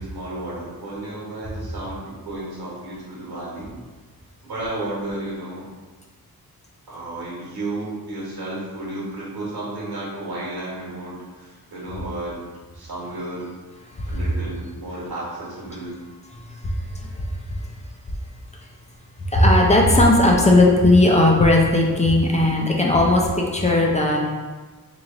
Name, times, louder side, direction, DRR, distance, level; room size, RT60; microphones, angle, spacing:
voice 1, 0.0-3.7 4.4-5.7 6.9-12.4 12.7-13.5 14.1-16.0, right 2 dB, 85° right, -6 dB, 1.3 m, -32 dB
voice 2, 19.3-23.3 23.5-24.2, left 2 dB, 20° left, -1 dB, 0.5 m, -16 dB
3.2 x 2.5 x 3.7 m, 1.4 s
wide cardioid pair, 105°, 37 cm